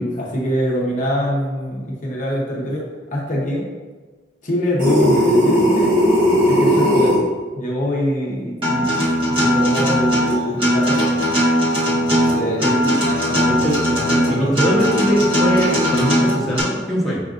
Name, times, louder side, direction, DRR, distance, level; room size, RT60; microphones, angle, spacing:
voice 1, 0.0-3.7 4.4-6.0 6.5-7.2 7.5-11.1 11.9-12.6 13.0-13.5 13.9-14.5, equal, 45° left, -4 dB, 0.7 m, -24 dB
sound 1, 4.8-7.2, equal, 50° right, 1.0 m, -16 dB
Acoustic guitar, 8.6-16.6, equal, 30° right, 1.0 m, -18 dB
voice 2, 12.4-12.9 13.5-13.8 14.3-17.2, equal, ahead, -7 dB, 0.9 m, -21 dB
6.0 x 2.4 x 2.4 m, 1.3 s
head